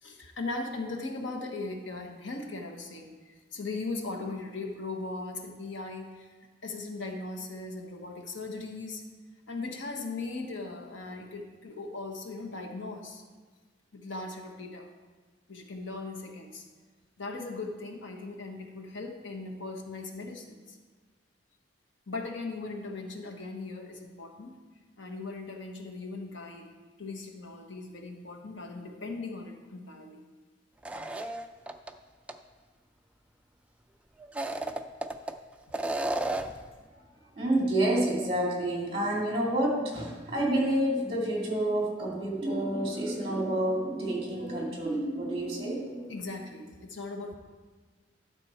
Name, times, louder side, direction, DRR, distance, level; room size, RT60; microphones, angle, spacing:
voice 1, 0.0-6.4 6.6-9.0 9.5-13.2 13.9-14.9 15.5-16.7 17.2-20.8 22.1-24.5 25.0-26.7 27.0-30.2 46.1-47.3, left 3 dB, 85° left, 3 dB, 1.2 m, -38 dB
sound 1, 30.8-31.9 32.3-32.4 34.2-35.3 35.7-36.6, right 2 dB, 5° right, 0.3 m, -32 dB
voice 2, 37.3-46.1, right 1 dB, 30° right, -3 dB, 2.5 m, -29 dB
12.0 x 6.2 x 4.4 m, 1.4 s
head